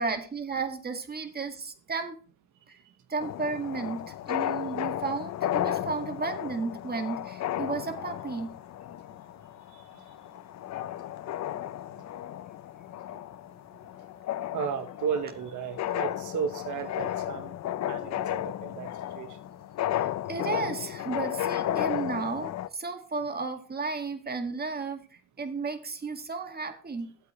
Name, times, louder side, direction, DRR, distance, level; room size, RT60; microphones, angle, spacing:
voice 1, 0.0-2.2 2.7-2.8 3.1-8.6 19.9-27.2, right 4 dB, 30° right, 2.0 m, -33 dB
sound 1, 3.2-22.7, left 12 dB, 65° left, 0.6 m, -34 dB
voice 2, 14.5-17.5 17.9-18.9 19.1-19.3, right 7 dB, 75° right, 1.1 m, -34 dB
12.5 x 8.1 x 3.2 m
cardioid pair, 90°, 30 cm